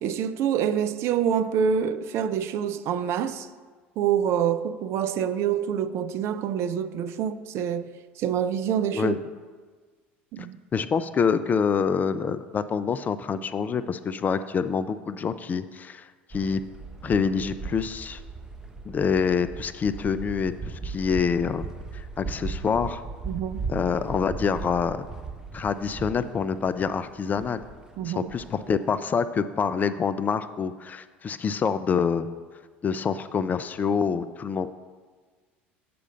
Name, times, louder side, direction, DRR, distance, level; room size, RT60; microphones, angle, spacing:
voice 1, 0.0-3.5 4.0-7.9 8.2-9.2 10.3-10.6 23.3-23.7 28.0-28.3, right 8 dB, 45° right, 0.5 m, -26 dB
voice 2, 10.7-16.6 17.0-18.2 18.9-21.6 21.9-23.0 23.7-25.0 25.5-27.6 28.0-32.3 32.8-34.7, left 6 dB, 25° left, 0.4 m, -26 dB
sound 1, 16.3-29.0, right 4 dB, 10° right, 0.8 m, -38 dB
7.7 x 4.9 x 6.6 m
figure-of-eight pair, 70°, 6 cm